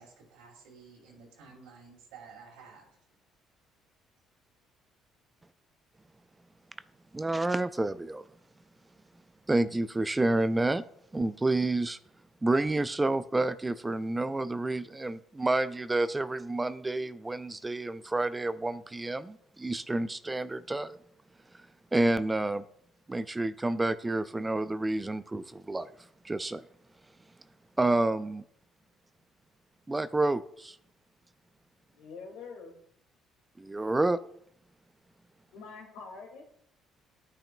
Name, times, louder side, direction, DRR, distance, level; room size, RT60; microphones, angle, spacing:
voice 1, 0.0-3.0, right 5 dB, 80° right, -3 dB, 2.9 m, -52 dB
voice 2, 7.1-8.2 9.5-10.8 11.1-12.0 12.4-21.0 21.9-22.6 23.1-25.9 26.2-26.6 27.8-28.4 29.9-30.8 33.6-34.2, right 2 dB, 20° right, 14 dB, 0.4 m, -29 dB
voice 3, 31.9-32.7 35.5-36.4, left 4 dB, 85° left, 1 dB, 2.2 m, -45 dB
13.0 x 5.9 x 2.3 m, 0.71 s
supercardioid pair, 65°, 0 cm